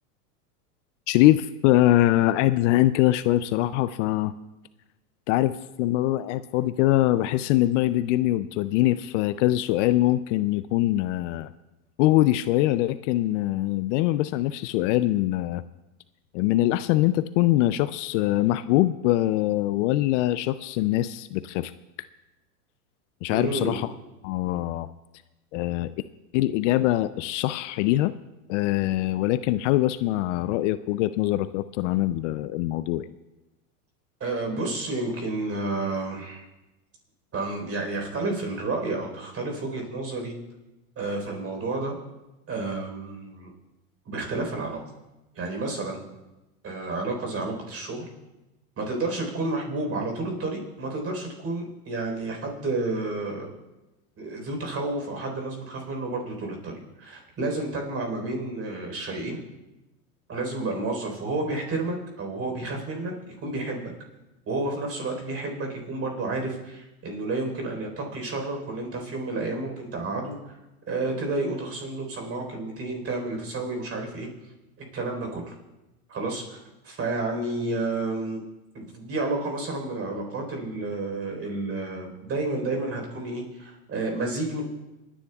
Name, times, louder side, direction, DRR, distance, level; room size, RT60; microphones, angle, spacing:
voice 1, 1.1-4.3 5.3-11.5 12.0-15.6 16.3-21.7 23.2-23.9 24.2-24.9 25.5-25.9 26.3-28.1 28.5-33.1, left 15 dB, 55° left, 14 dB, 0.5 m, -23 dB
voice 2, 23.3-23.8 34.2-36.5 37.3-40.3 41.0-41.9 42.5-43.5 44.0-44.8 45.3-46.0 46.6-48.0 48.8-53.5 54.2-59.4 60.3-63.9 64.5-70.3 70.9-74.3 74.9-75.5 76.1-78.4 78.7-84.6, right 2 dB, 30° right, 2 dB, 4.0 m, -30 dB
28.5 x 10.0 x 2.3 m, 1.0 s
hypercardioid pair, 110°, 45 cm